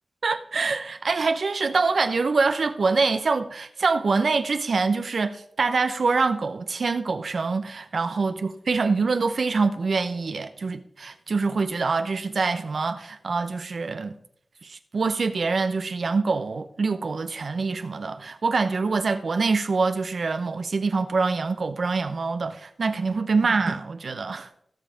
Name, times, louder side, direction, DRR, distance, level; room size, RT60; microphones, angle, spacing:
voice 1, 0.2-14.1 14.6-24.5, right 4 dB, 70° right, 0.7 m, -25 dB
16.0 x 5.6 x 5.0 m
wide cardioid pair, 85°, 0 cm